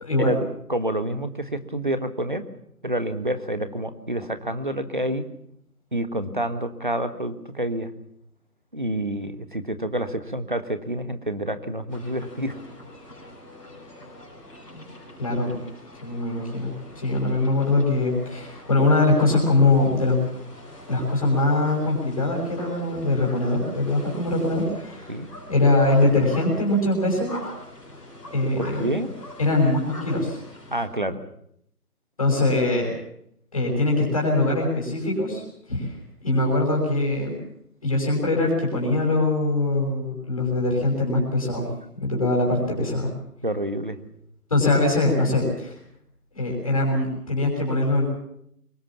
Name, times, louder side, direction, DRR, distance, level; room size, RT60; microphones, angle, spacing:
voice 1, 0.7-2.4 2.8-5.2 5.9-7.9 8.7-12.6 25.1-25.3 28.6-29.1 30.7-31.2 43.4-44.0, right 1 dB, 30° right, 10 dB, 1.5 m, -28 dB
sound 1, 11.9-30.8, left 1 dB, 5° left, 3.5 m, -43 dB
voice 2, 15.2-15.6 16.0-20.2 20.9-25.2 25.5-27.3 28.3-28.9 29.4-30.4 32.2-32.9 33.5-35.9 36.2-37.4 37.8-41.7 42.0-43.1 44.5-45.8 46.3-48.0, left 2 dB, 25° left, -3 dB, 6.0 m, -22 dB
24.0 x 19.5 x 7.4 m, 0.71 s
figure-of-eight pair, 170°, 47 cm